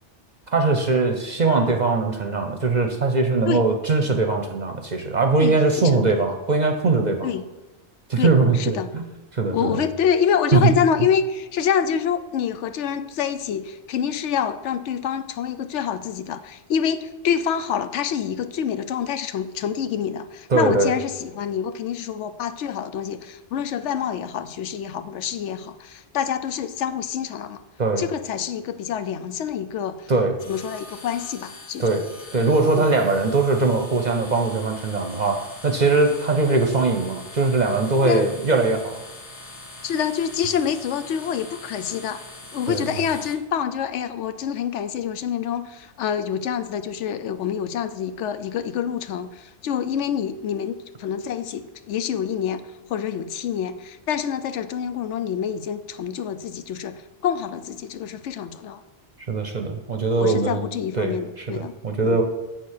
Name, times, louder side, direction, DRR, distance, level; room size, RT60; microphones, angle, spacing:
voice 1, 0.5-7.3 8.1-9.1 9.3-9.8 10.5-10.8 20.5-21.0 27.8-28.1 30.1-30.4 31.8-32.1 32.3-39.0 42.7-42.9 59.2-60.6 61.0-62.2, right 3 dB, 45° right, 5 dB, 0.7 m, -21 dB
voice 2, 5.4-6.3 7.2-7.5 8.2-8.9 9.5-27.6 28.0-30.1 30.5-32.0 32.7-32.9 38.0-38.3 39.8-42.2 42.5-52.6 52.9-58.8 60.2-61.7 62.0-62.2, left 8 dB, 85° left, 11 dB, 0.9 m, -26 dB
sound 1, 30.4-43.3, left 2 dB, 30° left, 1.1 m, -42 dB
7.7 x 4.4 x 6.4 m, 1.1 s
omnidirectional pair, 1.2 m